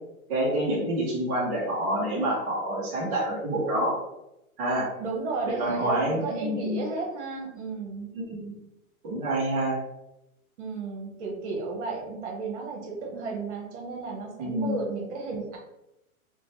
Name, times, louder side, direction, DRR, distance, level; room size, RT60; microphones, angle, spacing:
voice 1, 0.3-4.0 4.6-4.9 5.6-6.9 8.1-8.5 9.0-9.8 14.4-14.8, right 1 dB, 25° right, -6 dB, 0.5 m, -27 dB
voice 2, 5.0-8.1 10.6-15.6, right 4 dB, 55° right, 0 dB, 0.9 m, -33 dB
2.9 x 2.1 x 2.7 m, 0.89 s
hypercardioid pair, 150°, 43 cm